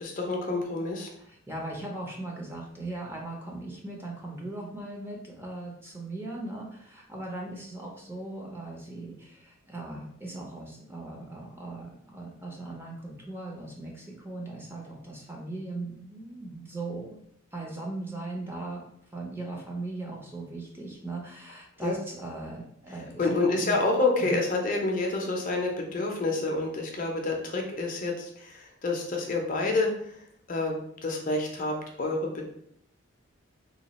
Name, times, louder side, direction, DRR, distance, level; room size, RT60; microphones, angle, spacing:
voice 1, 0.0-1.1 21.8-22.0 23.2-30.2 30.5-32.4, left 2 dB, 40° left, 1 dB, 0.5 m, -28 dB
voice 2, 1.2-17.2 17.5-18.8 19.1-23.8 24.2-24.4, right 2 dB, 10° right, -2 dB, 0.5 m, -39 dB
2.9 x 2.2 x 4.0 m, 0.71 s
head